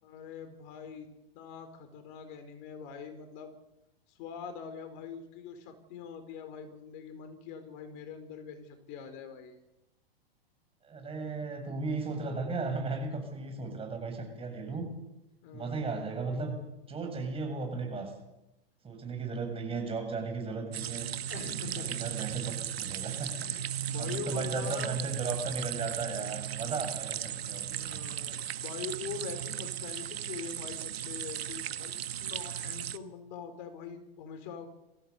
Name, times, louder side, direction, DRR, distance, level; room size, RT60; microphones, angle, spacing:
voice 1, 0.0-1.1 1.3-3.5 4.1-9.6 15.4-16.0 21.3-22.0 23.3-25.0 27.7-34.7, left 6 dB, 50° left, 8 dB, 4.3 m, -43 dB
voice 2, 10.8-14.9 15.5-16.5 16.9-18.1 18.8-21.1 21.8-28.2, right 4 dB, 20° right, 5 dB, 7.6 m, -36 dB
sound 1, 20.7-33.0, right 11 dB, 80° right, 1.4 m, -36 dB
23.5 x 16.0 x 8.3 m, 0.92 s
hypercardioid pair, 120°, 30 cm